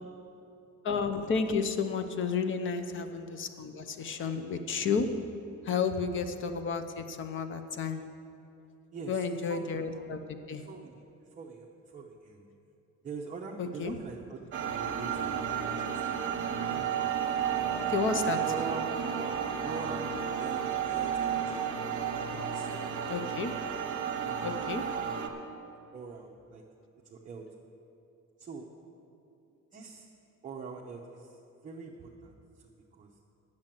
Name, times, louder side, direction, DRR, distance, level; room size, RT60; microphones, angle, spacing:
voice 1, 0.8-5.1 5.7-8.0 9.1-10.2 10.5-10.6 13.6-14.0 17.9-18.4 23.1-23.5 24.4-24.8, left 5 dB, 40° left, 9 dB, 0.7 m, -31 dB
voice 2, 8.9-9.6 9.9-10.1 10.6-11.0 11.4-12.5 13.0-14.4 14.7-16.0 16.6-16.9 18.4-18.9 19.6-21.7 22.3-23.2 24.3-24.9 25.9-26.6 27.1-27.5 28.4-28.7 29.7-30.1 30.4-31.3 31.6-32.3 33.0-33.1, right 4 dB, 25° right, -2 dB, 0.7 m, -43 dB
sound 1, 14.5-25.3, right 8 dB, 40° right, 1.1 m, -32 dB
10.5 x 7.6 x 7.5 m, 2.7 s
cardioid pair, 170°, 30 cm